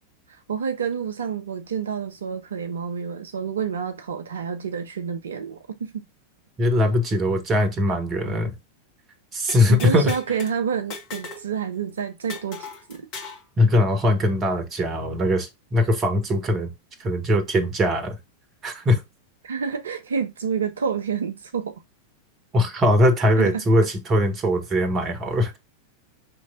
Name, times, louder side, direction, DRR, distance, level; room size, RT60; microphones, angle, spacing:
voice 1, 0.3-6.0 9.7-13.1 19.4-21.8 23.4-23.6, right 6 dB, 65° right, 0.4 m, -29 dB
voice 2, 6.6-8.5 9.3-10.1 13.6-16.7 17.0-18.1 18.6-19.0 22.5-25.6, left 1 dB, 25° right, 1.1 m, -21 dB
sound 1, 9.5-10.5 10.9-11.5 11.7-11.8 12.3-13.4, left 3 dB, 45° left, 1.4 m, -37 dB
5.1 x 3.1 x 2.4 m
figure-of-eight pair, 90°, 0 cm